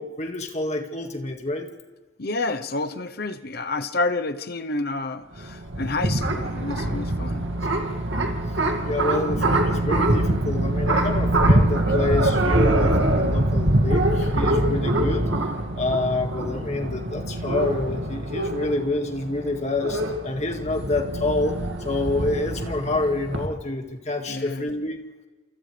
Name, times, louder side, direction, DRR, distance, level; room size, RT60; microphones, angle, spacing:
voice 1, 0.0-1.7 8.0-8.2 8.9-15.3 15.8-25.0, left 2 dB, 35° left, 2.1 m, -27 dB
voice 2, 2.2-7.5 9.4-9.6 11.9-12.0 24.3-24.7, left 2 dB, 50° left, 0.9 m, -29 dB
sound 1, 5.3-23.5, right 1 dB, 70° right, 2.3 m, -24 dB
29.5 x 28.0 x 3.4 m
head